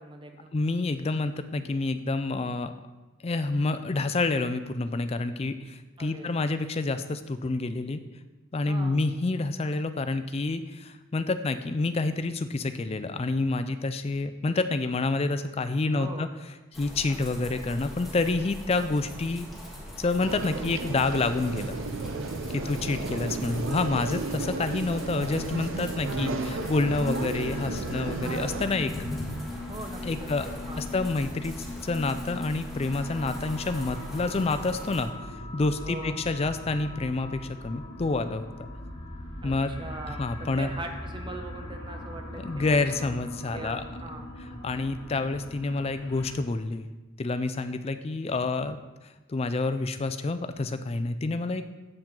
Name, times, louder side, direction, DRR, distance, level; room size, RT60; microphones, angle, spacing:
voice 1, 0.0-0.5 6.0-6.5 8.7-9.0 15.9-16.3 22.4-22.9 29.5-30.9 35.8-36.2 39.4-43.2 43.5-44.3, right 2 dB, 20° right, 4 dB, 0.6 m, -41 dB
voice 2, 0.5-2.7 3.2-8.0 8.5-16.3 16.7-19.5 20.0-21.8 22.5-28.9 30.0-30.5 30.8-31.6 31.8-38.7 39.4-39.7 40.1-40.7 42.4-43.8 44.6-46.9 47.2-48.8 49.3-51.6, left 3 dB, 30° left, 10 dB, 0.3 m, -28 dB
sound 1, 16.7-35.0, equal, ahead, 1.4 m, -41 dB
sound 2, 20.2-28.7, right 3 dB, 65° right, 0.5 m, -33 dB
sound 3, 26.8-46.4, left 1 dB, 55° left, 1.1 m, -40 dB
7.5 x 7.2 x 3.8 m, 1.2 s
head